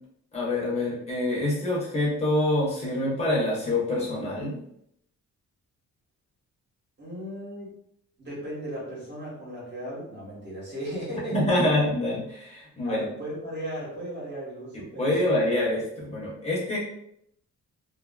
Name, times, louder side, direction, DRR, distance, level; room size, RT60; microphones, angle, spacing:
voice 1, 0.3-4.6 11.3-13.0 15.0-16.8, left 1 dB, 20° left, -5 dB, 0.8 m, -26 dB
voice 2, 7.0-7.8 8.2-11.4 12.8-15.1, equal, 35° right, -7 dB, 1.3 m, -36 dB
2.6 x 2.5 x 2.3 m, 0.72 s
wide cardioid pair, 175°, 31 cm